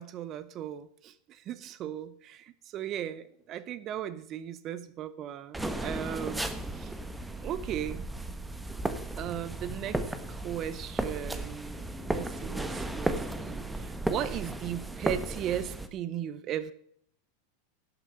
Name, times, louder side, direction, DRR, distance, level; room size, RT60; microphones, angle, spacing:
voice 1, 0.0-6.9 7.4-8.1 9.2-16.7, right 10 dB, 40° right, 16 dB, 0.7 m, -37 dB
sound 1, 5.5-15.9, right 2 dB, 10° right, 1.0 m, -35 dB
11.5 x 7.9 x 5.7 m, 0.66 s
hypercardioid pair, 95°, 0 cm